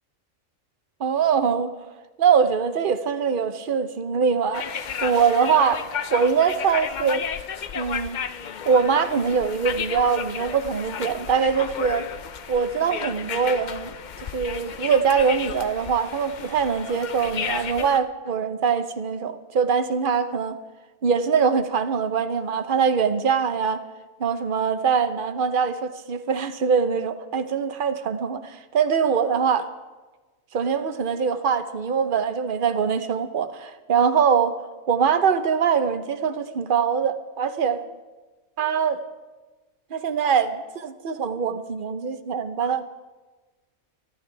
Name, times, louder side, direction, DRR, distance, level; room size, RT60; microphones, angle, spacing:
voice 1, 1.0-1.7 2.2-5.8 6.1-7.2 7.7-8.2 8.7-12.1 12.5-20.6 21.0-23.8 24.2-29.7 30.5-34.6 34.9-37.8 38.6-39.0 39.9-42.8, right 6 dB, 45° right, 0.9 m, -23 dB
sound 1, 4.5-18.0, left 7 dB, 55° left, 0.5 m, -33 dB
25.0 x 12.5 x 3.4 m
omnidirectional pair, 1.4 m